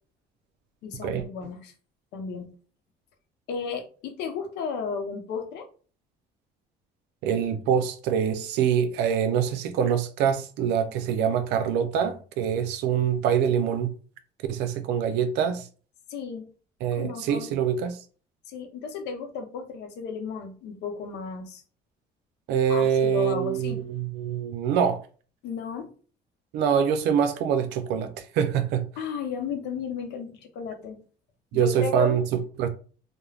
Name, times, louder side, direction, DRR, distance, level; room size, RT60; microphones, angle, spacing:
voice 1, 0.8-1.7 2.1-2.5 3.5-5.7 16.1-16.5 17.0-17.5 18.5-21.6 22.7-23.8 25.4-25.9 29.0-31.0 31.5-32.2, left 5 dB, 85° left, 0.7 m, -34 dB
voice 2, 7.2-13.9 14.5-15.7 16.8-18.0 22.5-25.0 26.5-28.8 31.5-32.7, right 8 dB, 90° right, 0.5 m, -25 dB
2.3 x 2.1 x 3.2 m
cardioid pair, 110°, 17 cm